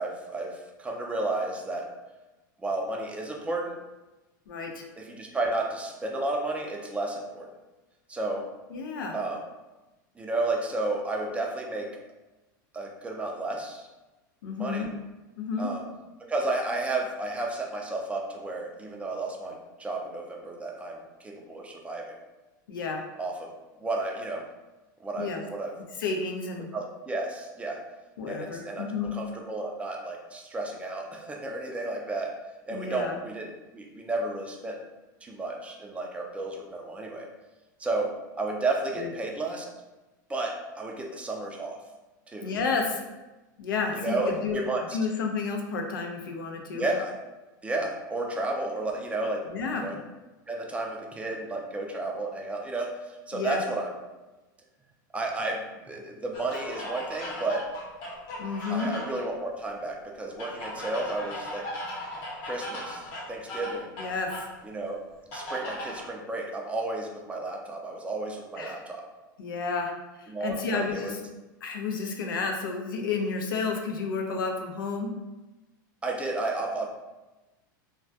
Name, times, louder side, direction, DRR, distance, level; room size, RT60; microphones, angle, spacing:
voice 1, 0.0-1.9 2.6-3.8 5.0-7.5 8.1-8.5 9.1-9.5 10.2-11.9 12.7-13.9 14.6-14.9 15.6-15.9 16.2-22.2 23.2-23.5 23.8-24.5 25.0-25.7 26.7-27.8 28.3-32.4 32.7-34.8 35.2-37.3 37.8-39.7 40.3-41.8 42.3-42.5 43.9-45.0 46.7-47.2 47.6-49.5 49.7-50.0 50.5-54.0 55.1-57.7 58.7-61.7 62.4-63.9 64.6-65.0 65.3-69.1 70.3-71.2 76.0-76.9, right 2 dB, 10° right, 1 dB, 0.3 m, -32 dB
voice 2, 4.5-4.8 8.7-9.2 14.4-14.9 15.4-15.7 22.7-23.0 25.2-25.4 26.0-26.7 28.2-29.1 32.7-33.1 39.0-39.1 42.4-43.0 43.6-44.6 44.9-46.9 49.5-49.9 53.3-53.6 58.4-58.9 64.0-64.3 68.6-68.8 69.4-69.9 70.2-71.1 71.6-75.1, left 4 dB, 90° left, 3 dB, 0.4 m, -31 dB
sound 1, 56.3-59.3 60.4-64.5 65.3-66.1, left 1 dB, 55° left, 0.8 m, -38 dB
2.2 x 2.1 x 2.6 m, 1.1 s
hypercardioid pair, 115°, 11 cm